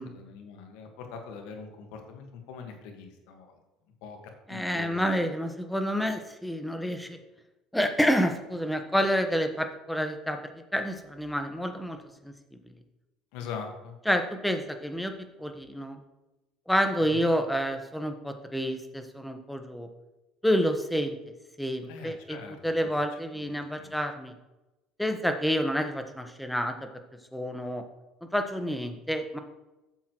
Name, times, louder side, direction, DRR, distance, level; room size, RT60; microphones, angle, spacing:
voice 1, 0.0-3.5 4.0-4.2 4.5-5.1 13.3-14.0 17.1-17.3 21.9-22.9 23.3-23.9, left 6 dB, 70° left, 4 dB, 1.6 m, -42 dB
voice 2, 4.5-7.2 7.7-12.0 12.2-12.3 14.0-15.1 15.4-16.0 16.7-19.9 20.4-21.2 21.6-24.3 25.0-26.7 27.3-27.8 28.3-29.4, equal, 5° left, 6 dB, 1.2 m, -28 dB
12.5 x 7.3 x 3.1 m, 1.0 s
hypercardioid pair, 70°, 0 cm